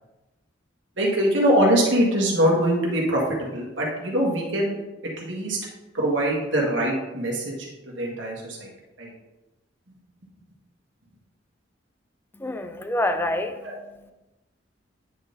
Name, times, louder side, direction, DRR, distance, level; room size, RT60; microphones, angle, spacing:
voice 1, 1.0-3.2 3.5-4.7 5.0-5.6 5.9-8.7 9.0-9.1 13.6-13.7, right 1 dB, 75° right, -2 dB, 1.6 m, -23 dB
voice 2, 12.3-14.1, left 1 dB, 10° left, 7 dB, 0.5 m, -28 dB
9.2 x 3.8 x 4.0 m, 1.0 s
head